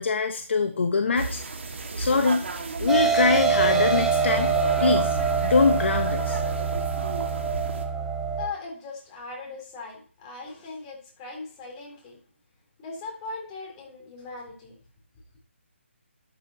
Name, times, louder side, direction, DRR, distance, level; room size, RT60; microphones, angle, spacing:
voice 1, 0.0-1.4 2.0-2.4 2.8-4.5 4.8-6.4, left 4 dB, 60° left, 5 dB, 1.3 m, -23 dB
sound 1, 1.2-7.9, right 4 dB, 65° right, 2.0 m, -33 dB
sound 2, 2.9-8.5, right 5 dB, 10° right, 1.1 m, -25 dB
voice 2, 8.4-12.2 12.8-14.8, left 4 dB, 20° left, 0 dB, 3.7 m, -39 dB
12.0 x 8.1 x 2.9 m, 0.42 s
hypercardioid pair, 160°, 7 cm